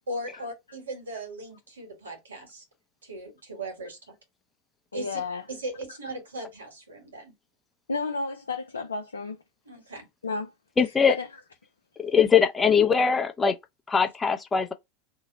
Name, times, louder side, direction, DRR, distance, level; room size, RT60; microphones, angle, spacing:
voice 1, 0.1-2.6 3.0-4.0 4.9-5.2 5.5-7.3 9.7-10.1, right 1 dB, 85° right, 1.3 m, -38 dB
voice 2, 4.9-5.4 7.9-9.4 10.2-10.5 11.1-11.3, left 4 dB, 85° left, 0.4 m, -31 dB
voice 3, 10.8-11.2 12.0-13.6 13.9-14.7, left 6 dB, 20° left, 0.6 m, -21 dB
2.8 x 2.0 x 3.9 m
hypercardioid pair, 85°, 0 cm